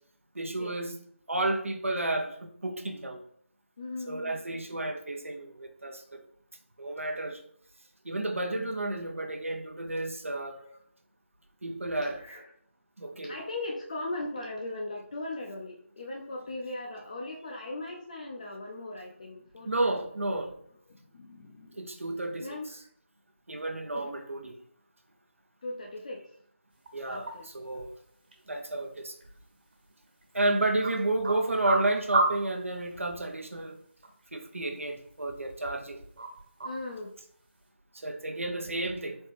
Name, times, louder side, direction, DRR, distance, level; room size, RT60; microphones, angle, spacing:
voice 1, 0.3-1.0 1.3-3.2 4.1-6.2 6.8-7.4 8.0-10.6 11.6-12.2 13.0-13.4 19.6-20.5 21.7-22.8 23.5-24.5 26.9-28.0 28.5-29.2 30.3-33.8 34.3-36.0 37.9-39.2, right 2 dB, 80° right, 5 dB, 0.8 m, -31 dB
voice 2, 3.8-4.4 10.6-10.8 12.1-12.4 13.2-19.9 20.3-20.5 20.9-21.8 22.4-22.7 23.9-24.1 25.6-26.2 27.0-27.5 36.6-37.1, left 2 dB, 35° left, 0 dB, 0.4 m, -39 dB
sound 1, 26.7-37.7, right 2 dB, 50° right, 1.4 m, -37 dB
4.2 x 2.9 x 3.3 m, 0.63 s
figure-of-eight pair, 160°, 7 cm